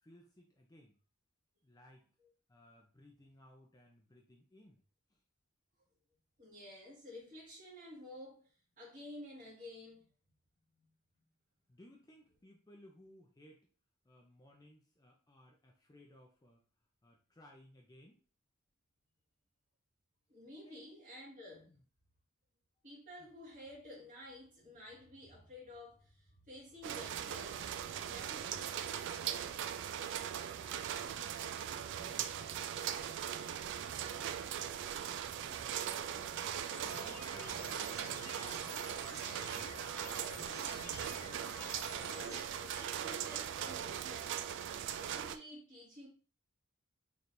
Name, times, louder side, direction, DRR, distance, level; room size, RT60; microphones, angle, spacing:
voice 1, 0.0-1.0 1.6-2.0 2.5-4.8 5.1-5.2 11.7-13.7 14.0-16.6 17.0-18.2 20.6-20.8 21.7-21.8 30.6-33.4 33.9-34.9 35.2-36.5 36.9-38.7, left 1 dB, 20° left, 0.6 m, -60 dB
voice 2, 6.4-10.1 10.7-10.9 20.3-21.7 22.8-28.8 42.0-44.4 44.9-46.1, left 1 dB, 40° right, 1.8 m, -52 dB
sound 1, 26.8-45.4, right 9 dB, 60° right, 0.3 m, -40 dB
sound 2, 36.7-42.4, left 6 dB, 90° left, 0.5 m, -51 dB
4.3 x 3.4 x 2.6 m
head